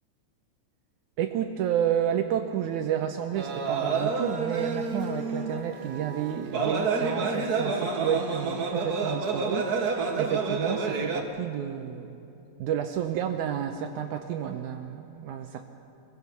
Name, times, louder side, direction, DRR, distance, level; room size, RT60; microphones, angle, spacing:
voice 1, 1.2-12.2 12.6-15.7, right 9 dB, 80° right, 6 dB, 2.1 m, -30 dB
sound 1, 3.4-11.2, right 4 dB, 55° right, 1.1 m, -29 dB
23.5 x 17.0 x 7.0 m, 2.7 s
omnidirectional pair, 3.7 m